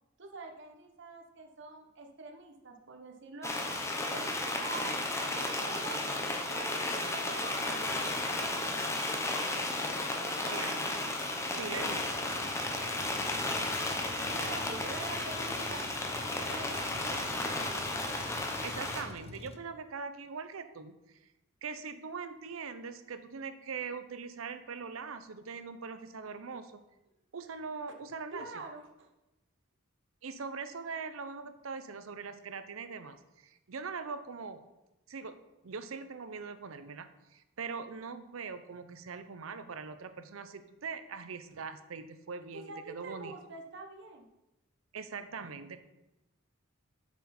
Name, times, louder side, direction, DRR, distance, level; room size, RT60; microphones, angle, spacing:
voice 1, 0.2-3.6 4.1-5.0 5.3-8.2 10.1-10.8 14.2-17.6 28.3-29.1 41.5-41.6 42.5-44.3, right 3 dB, 60° right, 4 dB, 1.0 m, -46 dB
sound 1, 3.4-19.0, left 2 dB, 15° left, 0.9 m, -34 dB
voice 2, 10.5-10.8 11.5-12.3 18.6-21.2 21.6-26.8 27.3-28.5 30.2-34.6 35.1-43.3 44.9-45.8, right 5 dB, 80° right, 11 dB, 0.6 m, -42 dB
Truck, 10.8-19.6, left 2 dB, 30° left, 0.5 m, -49 dB
7.9 x 6.2 x 4.2 m, 0.96 s
head